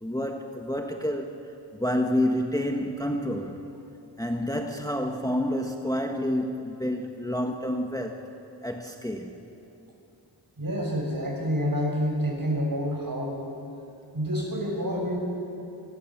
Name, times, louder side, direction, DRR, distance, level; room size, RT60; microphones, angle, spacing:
voice 1, 0.0-1.4 1.8-3.6 4.2-8.2 8.6-9.4, left 1 dB, 10° left, 3 dB, 1.5 m, -28 dB
voice 2, 10.6-13.4 14.1-15.2, equal, 50° right, 0 dB, 6.3 m, -28 dB
25.5 x 21.5 x 7.4 m, 2.9 s
wide cardioid pair, 50°, 45 cm